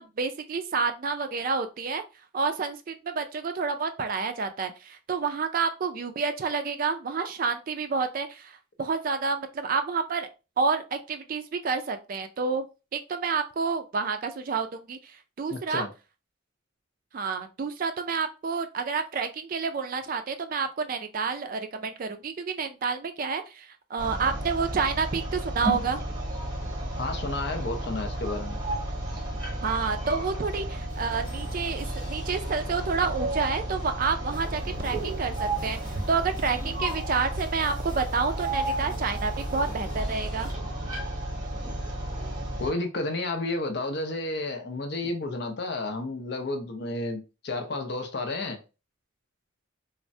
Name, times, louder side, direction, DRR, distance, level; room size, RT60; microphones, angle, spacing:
voice 1, 0.0-2.0 2.3-10.3 10.6-12.6 12.9-15.8 17.1-26.0 29.6-40.5, right 5 dB, 45° right, 0.3 m, -29 dB
voice 2, 15.5-15.9 27.0-28.6 42.6-48.6, left 2 dB, 55° left, 0.6 m, -31 dB
sound 1, 24.0-42.7, right 1 dB, 20° right, 0.8 m, -32 dB
sound 2, 30.9-40.5, equal, 20° left, 0.8 m, -45 dB
3.2 x 2.1 x 2.6 m
head